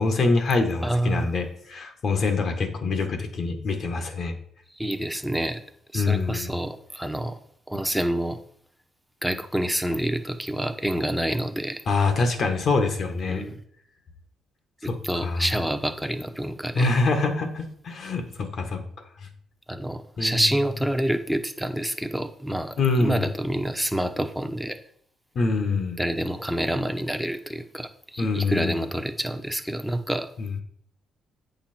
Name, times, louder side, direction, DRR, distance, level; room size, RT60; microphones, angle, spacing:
voice 1, 0.0-4.3 5.9-6.5 11.9-13.4 14.9-15.0 15.2-15.4 16.7-18.8 20.2-20.4 22.8-23.2 25.3-26.0 28.2-28.8 30.4-30.5, left 3 dB, 55° left, 6 dB, 1.6 m, -25 dB
voice 2, 0.8-1.3 4.7-5.6 5.9-7.4 7.7-8.4 9.2-11.8 13.3-13.5 14.8-16.9 19.7-24.8 26.0-30.3, right 1 dB, ahead, 6 dB, 0.9 m, -27 dB
8.4 x 5.8 x 4.4 m, 0.64 s
cardioid pair, 90°, 0 cm